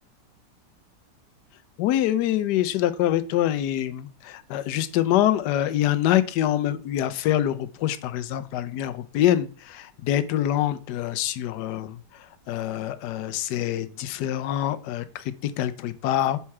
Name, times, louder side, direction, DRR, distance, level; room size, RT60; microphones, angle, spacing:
voice 1, 1.8-12.0 12.5-16.4, left 12 dB, 75° left, 11 dB, 1.2 m, -25 dB
5.7 x 4.3 x 4.7 m, 0.42 s
omnidirectional pair, 1.9 m